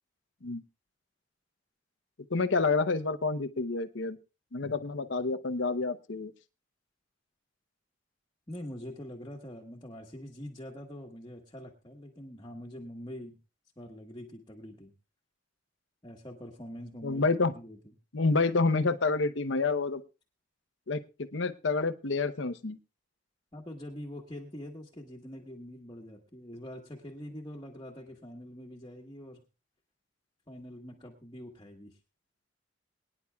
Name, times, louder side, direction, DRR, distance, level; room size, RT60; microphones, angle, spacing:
voice 1, 2.3-4.2 4.5-6.3 17.0-17.5 18.1-20.0 20.9-22.8, left 3 dB, 75° left, 12 dB, 0.8 m, -28 dB
voice 2, 8.5-13.4 13.8-14.9 16.0-17.2 17.5-17.8 23.5-29.4 30.5-32.0, left 1 dB, 25° left, -2 dB, 1.3 m, -44 dB
23.0 x 10.0 x 2.3 m, 0.29 s
head